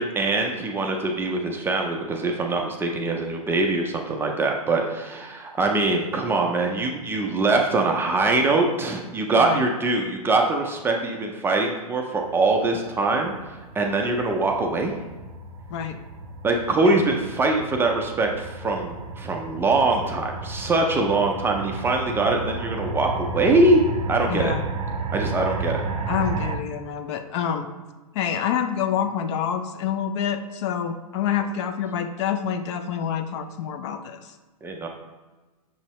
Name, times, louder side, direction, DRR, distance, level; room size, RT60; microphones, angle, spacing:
voice 1, 0.0-14.9 16.4-23.8 24.1-24.5 25.1-25.8 34.6-34.9, right 2 dB, 10° right, 1 dB, 0.4 m, -23 dB
sound 1, 12.2-26.6, right 3 dB, 70° right, 0.6 m, -33 dB
voice 2, 24.3-24.6 26.1-27.7 28.1-34.2, left 8 dB, 50° left, 8 dB, 0.5 m, -27 dB
6.2 x 2.7 x 3.0 m, 1.2 s
hypercardioid pair, 120°, 19 cm